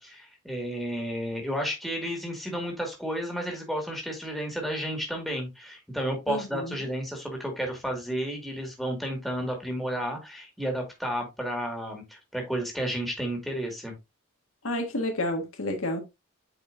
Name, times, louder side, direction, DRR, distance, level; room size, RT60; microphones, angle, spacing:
voice 1, 0.0-13.9, equal, ahead, 2.0 m, -32 dB
voice 2, 6.3-6.7 14.6-16.0, left 1 dB, 80° left, 1.7 m, -30 dB
8.6 x 4.7 x 2.6 m
head